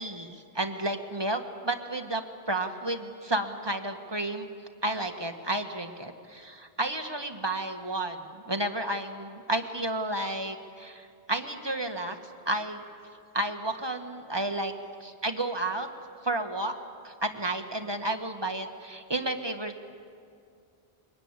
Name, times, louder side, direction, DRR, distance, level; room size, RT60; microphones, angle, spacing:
voice 1, 0.0-4.5 4.8-12.2 12.4-12.8 13.3-14.7 15.0-15.9 16.2-16.8 17.0-19.9, right 1 dB, 25° right, 5 dB, 1.5 m, -32 dB
23.5 x 20.5 x 9.7 m, 2.3 s
omnidirectional pair, 1.1 m